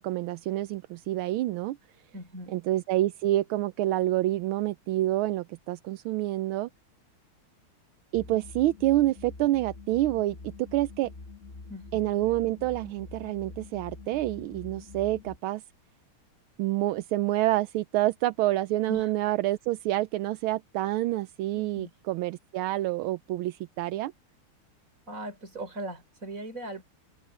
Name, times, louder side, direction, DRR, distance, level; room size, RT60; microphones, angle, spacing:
voice 1, 0.0-1.8 2.5-6.7 8.1-11.1 11.9-15.6 16.6-24.1, right 15 dB, 80° right, 1.4 m, -28 dB
voice 2, 2.1-2.5 11.7-12.0 18.9-19.1 21.5-21.9 25.1-26.8, right 1 dB, 35° right, 4.6 m, -39 dB
sound 1, 8.1-15.4, left 3 dB, 25° left, 1.8 m, -45 dB
omnidirectional pair, 2.4 m